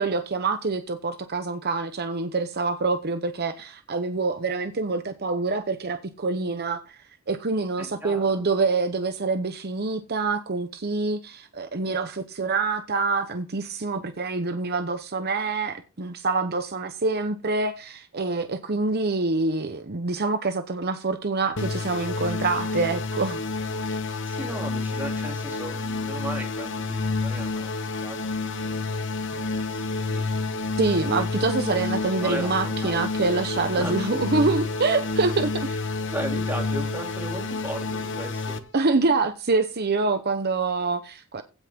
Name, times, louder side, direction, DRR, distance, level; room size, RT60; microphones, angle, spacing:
voice 1, 0.0-7.0 7.3-23.4 30.8-35.7 38.7-41.4, right 3 dB, 50° right, 0.9 m, -26 dB
voice 2, 7.8-8.4 24.2-30.7 32.2-33.0 33.8-34.2 35.7-35.8 36.1-38.6, right 1 dB, 10° right, 3.1 m, -37 dB
sound 1, 21.6-38.6, left 3 dB, 60° left, 1.1 m, -29 dB
16.5 x 5.9 x 3.7 m
head